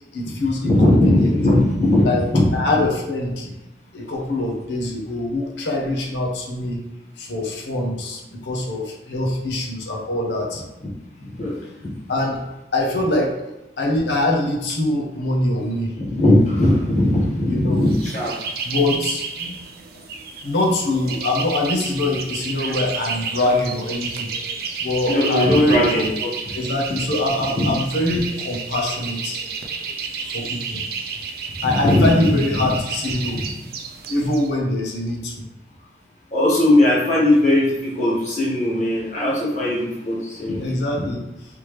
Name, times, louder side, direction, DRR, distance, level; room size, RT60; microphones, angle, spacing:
voice 1, 0.1-1.3 2.0-3.5 3.9-6.8 7.2-10.6 12.1-12.5 12.7-13.4 13.8-15.9 17.5-17.8 18.6-19.5 20.4-24.3 24.8-26.0 26.5-29.4 30.3-30.8 31.6-33.4 34.1-35.4 40.6-41.2, left 1 dB, 85° left, 0 dB, 0.8 m, -23 dB
voice 2, 0.6-2.0 2.3-2.5 11.2-11.5 16.0-18.3 25.1-26.3 27.5-27.6 31.7-32.1 32.6-32.7 36.3-40.6 41.0-41.1, left 1 dB, 45° left, -6 dB, 1.3 m, -18 dB
sound 1, 17.8-34.5, right 5 dB, 60° right, 0.4 m, -31 dB
3.4 x 3.1 x 3.1 m, 0.94 s
head